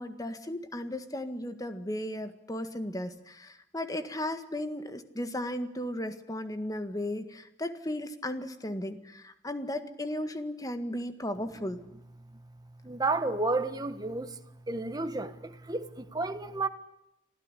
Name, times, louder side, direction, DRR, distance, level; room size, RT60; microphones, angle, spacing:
voice 1, 0.0-11.8, left 1 dB, 20° left, 1.8 m, -35 dB
voice 2, 12.8-14.4 14.7-16.7, right 3 dB, 20° right, 1.5 m, -31 dB
26.5 x 16.0 x 9.9 m
head